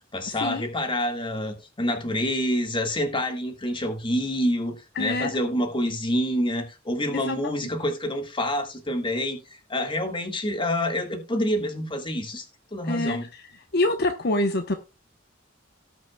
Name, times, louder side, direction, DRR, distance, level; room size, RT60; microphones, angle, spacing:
voice 1, 0.1-9.4 9.7-12.5 12.7-13.3, left 1 dB, 25° left, 1.8 m, -27 dB
voice 2, 5.0-5.3 7.1-7.4 12.8-13.4 13.7-14.7, left 2 dB, 55° left, 1.0 m, -25 dB
18.0 x 6.1 x 2.3 m
head